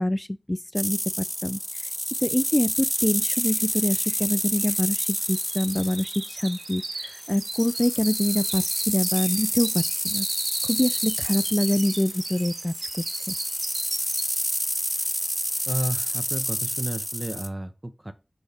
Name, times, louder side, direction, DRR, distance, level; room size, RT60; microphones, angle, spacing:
voice 1, 0.0-1.9 2.2-10.3 10.6-12.9 13.1-13.2, left 1 dB, 20° left, 0.3 m, -25 dB
sound 1, 0.8-17.5, equal, ahead, 0.8 m, -29 dB
sound 2, 2.8-2.9 3.1-14.6 15.0-15.3 15.7-15.8, right 2 dB, 85° right, 1.0 m, -36 dB
voice 2, 15.7-18.1, right 1 dB, 25° right, 1.0 m, -32 dB
6.2 x 4.4 x 3.5 m
cardioid pair, 40°, 0 cm